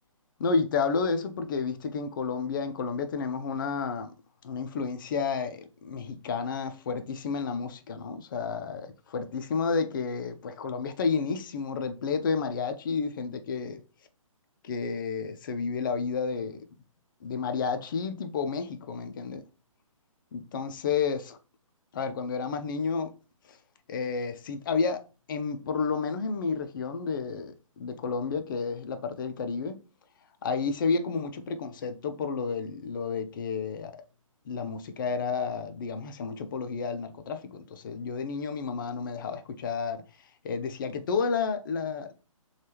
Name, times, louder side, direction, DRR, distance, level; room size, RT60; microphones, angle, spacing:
voice 1, 0.4-4.1 4.4-13.8 14.6-16.6 17.2-19.4 20.3-21.4 21.9-23.1 23.5-23.6 23.9-25.0 25.3-29.8 30.4-34.0 34.5-40.0 40.4-42.1, left 5 dB, 40° left, 0.4 m, -31 dB
3.3 x 2.3 x 2.8 m
hypercardioid pair, 150°, 18 cm